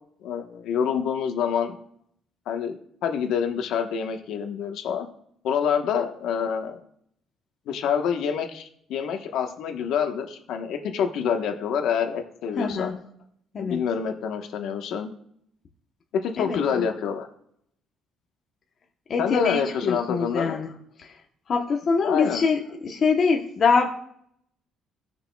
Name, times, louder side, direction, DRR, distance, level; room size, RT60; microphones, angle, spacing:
voice 1, 0.2-1.8 2.5-2.8 3.0-5.1 5.4-6.8 7.7-13.0 13.6-15.1 16.2-17.3 19.2-20.6 22.0-22.4, left 7 dB, 65° left, 5 dB, 1.1 m, -27 dB
voice 2, 12.6-13.0 13.5-13.8 16.4-16.9 19.1-20.7 21.0-21.1 21.5-23.9, left 5 dB, 35° left, 2 dB, 0.9 m, -24 dB
19.5 x 6.5 x 2.3 m, 0.69 s
cardioid pair, 180°, 0 cm